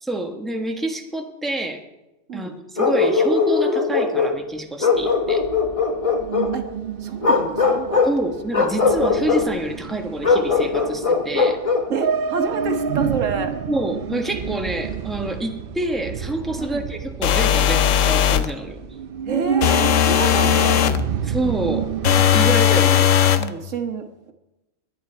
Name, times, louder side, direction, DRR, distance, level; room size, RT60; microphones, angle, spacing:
voice 1, 0.0-1.8 2.3-2.5 2.8-5.4 8.0-11.6 13.7-18.8 21.2-23.1, right 1 dB, ahead, 3 dB, 1.2 m, -27 dB
Bark, 2.8-4.4 4.8-6.5 7.2-8.2 8.5-9.5 10.2-11.9, left 4 dB, 30° left, 1.2 m, -20 dB
sound 1, 5.0-22.5, right 7 dB, 55° right, 0.7 m, -30 dB
voice 2, 7.0-8.0 11.9-13.5 16.6-16.9 19.3-20.9 23.3-24.3, right 5 dB, 80° right, 6 dB, 1.6 m, -28 dB
sound 2, 17.2-18.5 19.6-21.0 22.0-23.5, left 9 dB, 80° left, 1.1 m, -17 dB
21.5 x 9.4 x 4.5 m, 1.0 s
omnidirectional pair, 1.3 m